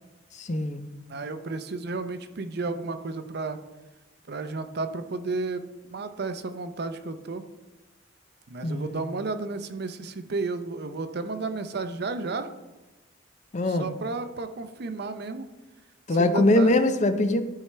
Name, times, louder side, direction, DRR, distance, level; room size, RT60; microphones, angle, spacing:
voice 1, 0.4-0.8 8.6-9.0 13.5-13.9 16.1-17.4, left 1 dB, 35° left, 9 dB, 0.5 m, -22 dB
voice 2, 1.1-3.6 4.3-7.4 8.5-12.5 13.7-15.5 16.1-16.7, right 3 dB, 55° right, 9 dB, 0.5 m, -32 dB
12.5 x 4.7 x 3.3 m, 1.1 s
head